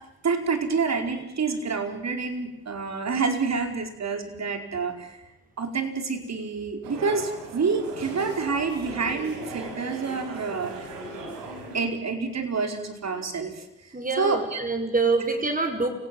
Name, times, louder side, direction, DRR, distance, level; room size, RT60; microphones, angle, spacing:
voice 1, 0.2-5.2 5.6-10.9 11.7-13.6 14.2-14.6, right 4 dB, 55° right, 6 dB, 4.8 m, -28 dB
sound 1, 6.8-11.9, right 2 dB, 85° right, 4.8 m, -38 dB
voice 2, 13.9-15.9, right 3 dB, 25° right, 6 dB, 6.1 m, -25 dB
29.0 x 17.0 x 9.2 m, 0.88 s
supercardioid pair, 60°, 33 cm